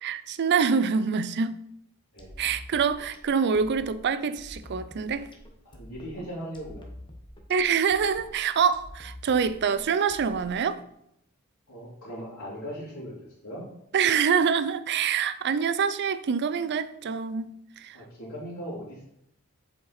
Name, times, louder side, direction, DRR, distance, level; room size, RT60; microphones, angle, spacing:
voice 1, 0.0-1.6 2.4-5.3 7.5-10.8 13.9-18.0, right 6 dB, 50° right, 0.4 m, -25 dB
sound 1, 2.2-10.8, left 1 dB, 20° left, 1.0 m, -47 dB
voice 2, 5.6-6.9 11.7-13.1 13.4-13.7 17.9-19.1, equal, 70° left, 2.5 m, -38 dB
7.2 x 5.1 x 4.2 m
head